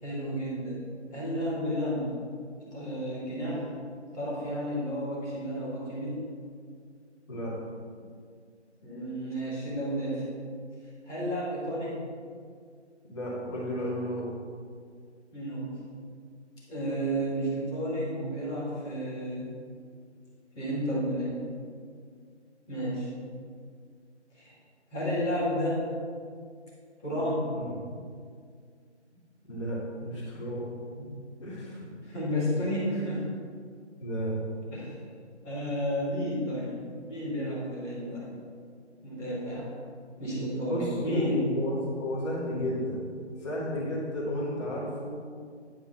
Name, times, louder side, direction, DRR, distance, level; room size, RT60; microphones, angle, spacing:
voice 1, 0.0-0.8 1.1-2.1 2.6-3.7 4.1-6.2 8.8-10.2 11.0-12.0 15.3-15.7 16.7-19.5 20.5-21.4 22.7-23.1 24.4-24.5 24.9-25.9 27.0-27.5 31.0-31.2 32.0-33.3 34.7-34.9 35.4-38.3 39.0-39.7 40.2-41.5, equal, 5° left, -15 dB, 0.9 m, -31 dB
voice 2, 13.1-14.3 27.6-27.9 29.5-30.7 31.4-31.8 34.0-34.3 40.6-43.1 43.4-45.1, equal, 25° left, -7 dB, 2.1 m, -33 dB
9.3 x 6.1 x 4.2 m, 2.1 s
figure-of-eight pair, 155°, 35 cm